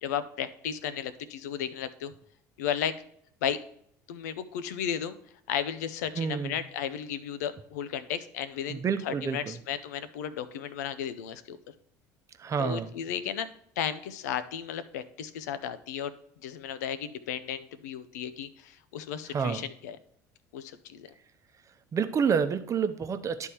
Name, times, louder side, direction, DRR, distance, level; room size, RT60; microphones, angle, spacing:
voice 1, 0.0-2.1 2.6-3.0 3.4-3.6 4.1-5.2 5.5-11.6 12.6-13.5 13.8-16.1 16.4-20.0 20.5-21.1, left 9 dB, 80° left, 13 dB, 0.6 m, -34 dB
voice 2, 6.1-6.6 8.7-9.6 12.4-12.9 19.3-19.7 21.9-23.5, right 6 dB, 35° right, 9 dB, 0.8 m, -28 dB
11.0 x 3.6 x 4.3 m, 0.68 s
hypercardioid pair, 70°, 9 cm